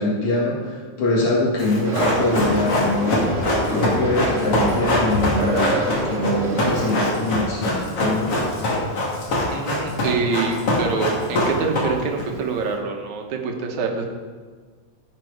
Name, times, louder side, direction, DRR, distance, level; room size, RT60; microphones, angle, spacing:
voice 1, 0.0-3.3 3.7-8.5, left 2 dB, 70° left, -4 dB, 3.2 m, -23 dB
Run, 1.6-12.2 12.5-12.6, left 1 dB, 50° left, 3.3 m, -23 dB
sound 1, 1.8-7.0, right 2 dB, 30° right, 1.6 m, -27 dB
voice 2, 9.5-14.0, right 4 dB, 75° right, 2 dB, 2.6 m, -25 dB
15.0 x 7.6 x 4.8 m, 1.5 s
omnidirectional pair, 3.5 m